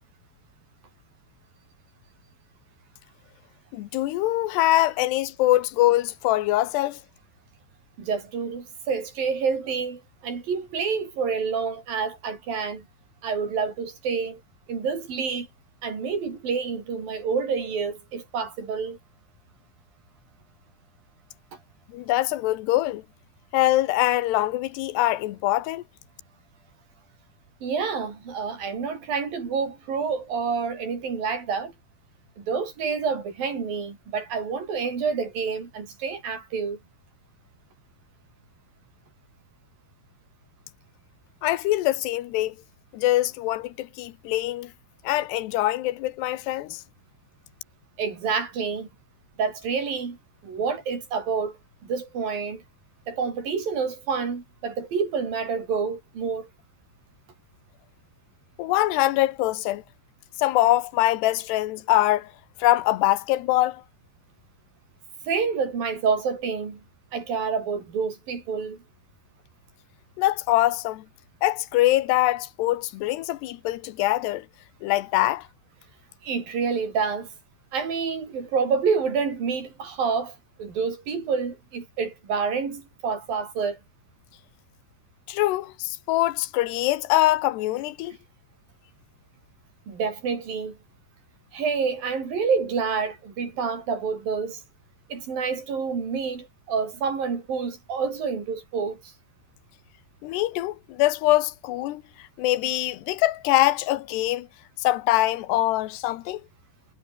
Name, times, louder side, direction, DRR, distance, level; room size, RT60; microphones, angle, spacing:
voice 1, 3.7-7.0 21.9-23.0 23.5-25.8 41.4-42.6 42.9-44.7 45.0-46.8 58.6-59.8 60.4-62.3 62.6-63.8 70.2-71.0 71.4-74.5 74.8-75.5 85.3-88.2 100.2-104.5 104.8-106.4, left 16 dB, 85° left, 3.2 m, -23 dB
voice 2, 8.0-12.9 13.2-14.4 14.7-15.5 15.8-19.0 27.6-31.7 32.4-36.8 48.0-48.9 49.4-50.2 50.4-52.6 53.1-56.5 65.2-66.8 67.1-68.8 76.2-77.3 77.7-83.8 89.9-90.8 91.5-94.6 95.1-99.1, right 5 dB, 60° right, 6.3 m, -28 dB
omnidirectional pair, 4.7 m